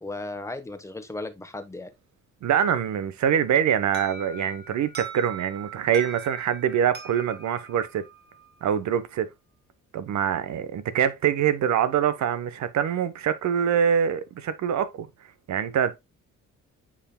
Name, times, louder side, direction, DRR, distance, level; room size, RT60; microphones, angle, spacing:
voice 1, 0.0-1.9, left 2 dB, 10° left, 1.1 m, -35 dB
voice 2, 2.4-8.0 8.6-9.3 9.9-15.1 15.5-16.0, right 8 dB, 65° right, 0.9 m, -24 dB
Alarm, 3.9-8.7, right 3 dB, 35° right, 1.6 m, -41 dB
8.5 x 5.0 x 2.2 m
cardioid pair, 90°, 30 cm